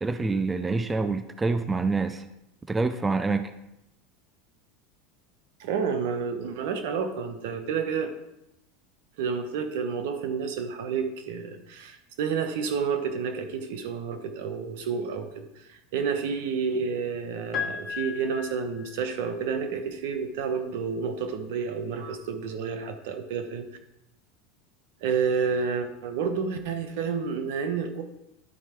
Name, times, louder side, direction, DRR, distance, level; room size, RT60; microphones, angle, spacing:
voice 1, 0.0-2.2 2.7-3.5, right 3 dB, 15° right, 11 dB, 0.5 m, -26 dB
voice 2, 5.6-8.1 9.2-23.7 25.0-28.0, right 6 dB, 70° right, 7 dB, 1.0 m, -30 dB
Piano, 17.5-19.5 20.8-20.9, left 7 dB, 30° left, 1.5 m, -35 dB
11.0 x 4.6 x 4.5 m, 0.86 s
hypercardioid pair, 100°, 0 cm